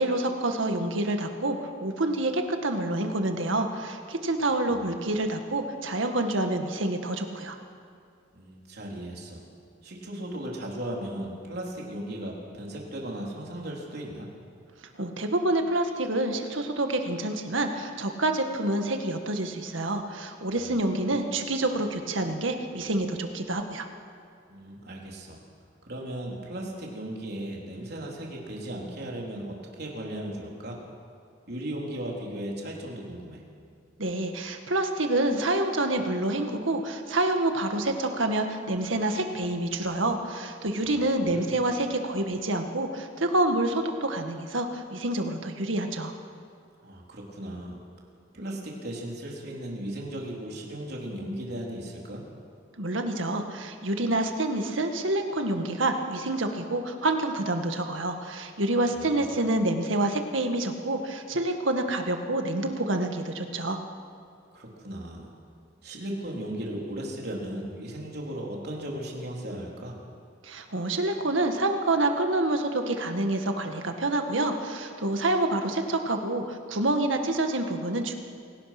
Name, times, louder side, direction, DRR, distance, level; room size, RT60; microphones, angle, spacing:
voice 1, 0.0-7.6 15.0-23.9 34.0-46.1 52.8-63.8 70.4-78.2, right 2 dB, 90° right, 5 dB, 1.9 m, -27 dB
voice 2, 8.3-9.4 9.8-14.3 24.5-25.4 25.8-30.8 31.5-33.4 40.8-41.0 41.3-41.5 46.8-47.8 48.3-52.2 58.9-59.2 64.5-65.3 65.8-70.0, right 1 dB, 55° right, -2 dB, 4.0 m, -36 dB
27.0 x 18.0 x 6.1 m, 2.2 s
head